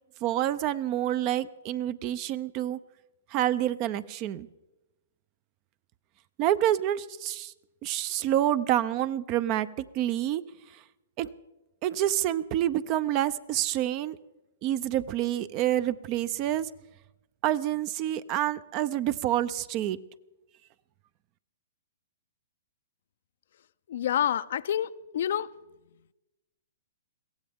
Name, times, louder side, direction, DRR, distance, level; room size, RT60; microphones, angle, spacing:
voice 1, 0.2-2.8 3.3-4.5 6.4-7.5 7.8-10.4 10.7-10.8 11.2-11.3 11.8-14.2 14.6-16.7 17.4-20.0, right 12 dB, 35° right, 0.6 m, -28 dB
voice 2, 23.9-25.5, left 10 dB, 65° left, 0.5 m, -28 dB
22.5 x 16.5 x 3.6 m
hypercardioid pair, 135°, 0 cm